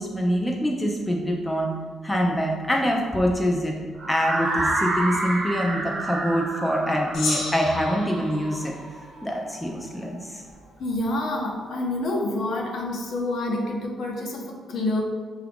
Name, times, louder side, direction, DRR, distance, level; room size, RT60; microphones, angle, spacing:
voice 1, 0.0-1.7 2.0-3.8 4.1-8.7 9.2-10.4, equal, 5° left, -1 dB, 0.3 m, -25 dB
sound 1, 4.0-9.9, right 2 dB, 35° right, 0.6 m, -29 dB
Gong, 7.1-9.8, left 3 dB, 90° left, 0.9 m, -33 dB
voice 2, 10.8-15.0, left 2 dB, 60° left, 0 dB, 0.7 m, -27 dB
5.7 x 2.4 x 3.5 m, 1.5 s
cardioid pair, 175°, 0 cm